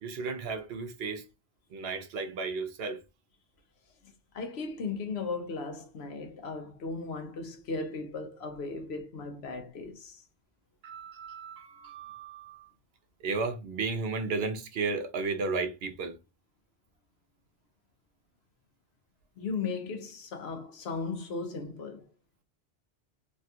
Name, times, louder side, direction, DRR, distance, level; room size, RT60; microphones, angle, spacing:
voice 1, 0.0-1.3 1.7-3.0 10.8-12.7 13.2-16.2, right 4 dB, 65° right, 0.8 m, -34 dB
voice 2, 4.3-10.2 19.4-22.0, left 4 dB, 70° left, 0.9 m, -36 dB
3.3 x 2.3 x 2.7 m
omnidirectional pair, 1.1 m